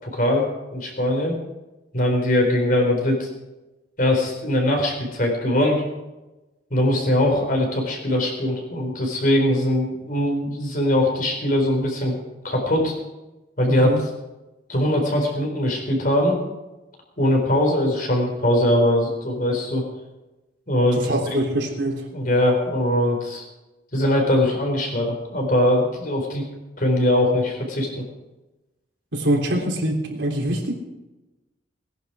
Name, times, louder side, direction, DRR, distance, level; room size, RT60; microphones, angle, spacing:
voice 1, 0.0-1.4 1.9-3.3 4.0-5.8 6.7-12.2 12.4-12.9 13.6-13.9 14.7-16.4 17.2-19.8 20.7-21.4 22.1-23.4 23.9-26.4 26.8-28.0, left 1 dB, 50° left, 1 dB, 4.3 m, -21 dB
voice 2, 13.7-14.0 21.0-22.0 29.1-30.7, right 1 dB, 85° right, 0 dB, 3.4 m, -24 dB
18.5 x 10.5 x 4.9 m, 1.1 s
head